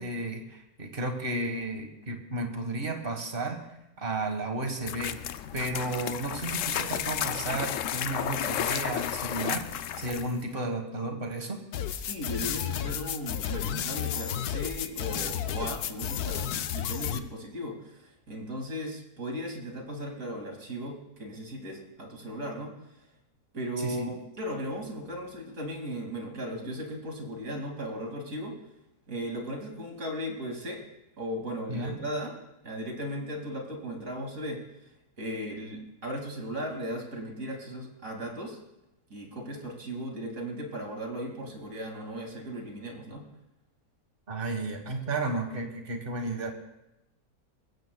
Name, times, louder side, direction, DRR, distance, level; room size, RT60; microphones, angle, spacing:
voice 1, 0.0-3.6 4.0-5.1 5.5-9.7 10.0-11.6 23.8-24.1 31.7-32.0 44.3-46.5, right 2 dB, 35° right, 4 dB, 1.7 m, -33 dB
sound 1, 4.8-10.4, left 10 dB, 65° left, 0.8 m, -32 dB
sound 2, 11.7-17.2, left 9 dB, 85° left, 1.2 m, -32 dB
voice 2, 12.0-22.7 23.5-28.6 29.1-30.8 31.2-32.3 32.6-34.6 35.2-38.6 39.1-43.2, equal, 60° right, 1 dB, 2.9 m, -37 dB
21.0 x 16.0 x 2.3 m, 0.90 s
omnidirectional pair, 1.6 m